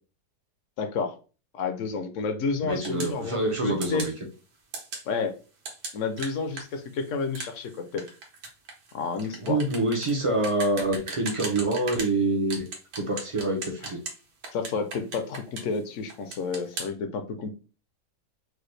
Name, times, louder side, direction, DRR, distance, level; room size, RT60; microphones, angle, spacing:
voice 1, 0.8-1.2 1.5-4.1 5.1-5.3 5.9-8.0 8.9-9.6 13.8-13.9 14.5-17.5, left 4 dB, 65° left, 0.8 m, -30 dB
voice 2, 2.6-4.1 9.4-12.7 13.0-14.0, right 2 dB, 50° right, 0.4 m, -26 dB
sound 1, 2.8-3.2 3.8-4.2 4.7-5.1 5.6-12.1 12.5-14.2 14.4-15.8 16.1-16.9, right 3 dB, 80° right, 1.6 m, -37 dB
4.7 x 2.1 x 3.2 m
omnidirectional pair, 1.8 m